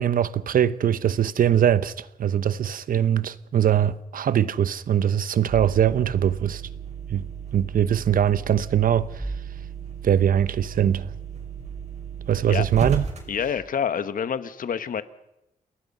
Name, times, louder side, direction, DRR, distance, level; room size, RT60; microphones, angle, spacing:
voice 1, 0.0-6.6 7.1-7.2 7.5-9.3 10.0-11.1 12.3-13.1, right 9 dB, 75° right, 0.9 m, -22 dB
sound 1, 5.5-13.5, right 6 dB, 50° right, 5.8 m, -35 dB
voice 2, 13.3-15.0, left 7 dB, 70° left, 1.2 m, -27 dB
29.0 x 19.0 x 5.5 m
cardioid pair, 100°, 15 cm